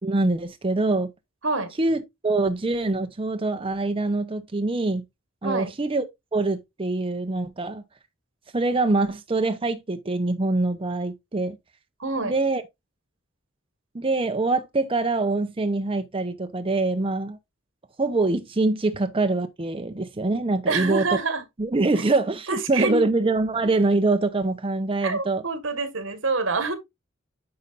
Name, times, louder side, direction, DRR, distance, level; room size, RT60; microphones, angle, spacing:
voice 1, 0.0-1.1 1.8-5.0 5.4-6.0 6.3-7.8 8.5-11.6 12.2-12.6 13.9-17.4 18.0-21.1 21.6-25.4, right 2 dB, 30° right, 0.7 m, -24 dB
voice 2, 12.0-12.3 20.7-21.4 21.9-22.0 22.5-23.0 25.0-26.7, right 3 dB, 75° right, 1.6 m, -26 dB
9.6 x 5.3 x 2.4 m
head